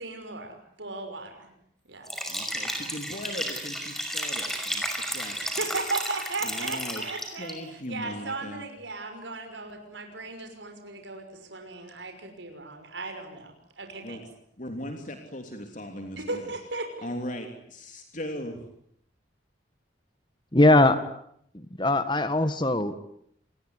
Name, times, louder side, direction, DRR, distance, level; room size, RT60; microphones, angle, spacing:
voice 1, 0.0-1.5 1.9-2.2 5.4-14.2 16.2-17.1, right 3 dB, 80° right, 5 dB, 6.0 m, -36 dB
Liquid, 2.0-7.5, equal, ahead, 5.7 m, -32 dB
voice 2, 2.3-4.8 5.1-5.6 6.4-7.0 7.4-8.6 14.0-14.2 14.6-16.4 17.0-18.6, left 1 dB, 45° left, 5 dB, 3.3 m, -38 dB
voice 3, 20.5-21.0 21.5-23.0, left 2 dB, 25° left, 11 dB, 1.8 m, -21 dB
28.5 x 21.5 x 9.8 m, 0.70 s
head